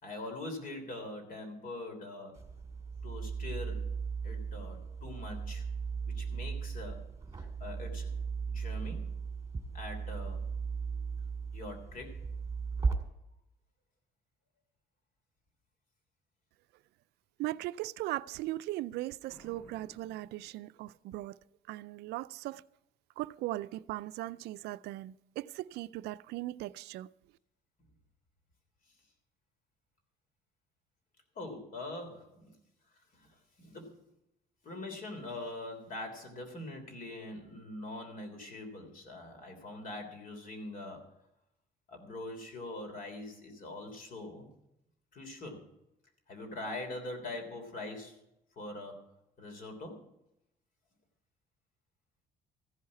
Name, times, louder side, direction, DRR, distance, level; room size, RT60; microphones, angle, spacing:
voice 1, 0.0-2.4 3.0-3.9 4.2-5.7 6.1-7.1 7.4-8.1 8.5-9.1 9.7-10.5 11.5-12.3 31.3-32.5 33.1-34.0 34.6-41.1 41.9-44.5 45.1-45.7 46.3-48.2 48.5-49.0 49.4-50.0, left 2 dB, 55° left, 3.3 m, -43 dB
sound 1, 2.3-12.9, right 5 dB, 20° right, 2.2 m, -37 dB
voice 2, 17.4-21.4 21.7-22.6 23.2-27.1, right 16 dB, 80° right, 0.4 m, -38 dB
Boom, 19.3-21.1, right 2 dB, 5° left, 3.8 m, -59 dB
15.0 x 5.6 x 9.7 m
cardioid pair, 110°, 17 cm